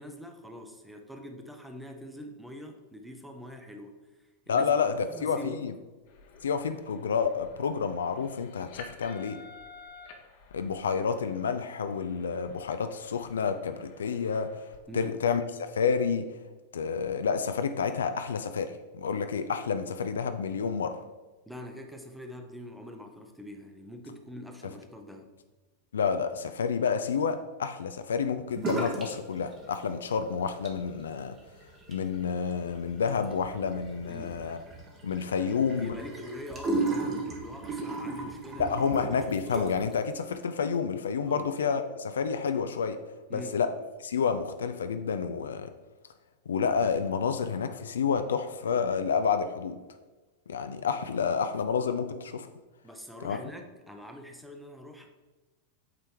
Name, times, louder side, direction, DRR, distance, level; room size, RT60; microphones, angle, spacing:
voice 1, 0.0-4.8 5.1-5.7 14.9-15.2 21.5-25.3 34.1-34.4 35.8-38.8 41.2-41.5 43.3-43.6 52.8-55.1, left 1 dB, 5° right, 4 dB, 0.8 m, -44 dB
voice 2, 4.5-5.7 6.4-9.4 10.5-14.6 14.9-16.3 16.7-20.9 25.9-31.3 31.9-34.6 35.0-35.9 38.6-43.0 43.3-43.7 44.0-45.7 46.5-49.8 50.5-52.5 53.2-53.4, left 6 dB, 65° left, 9 dB, 0.4 m, -29 dB
sound 1, 6.0-14.8, left 4 dB, 50° left, 1.0 m, -52 dB
sound 2, 28.6-29.2 29.4-30.1 30.5-39.9, right 2 dB, 25° right, 1.2 m, -35 dB
8.4 x 3.4 x 4.6 m, 1.2 s
figure-of-eight pair, 90°, 0 cm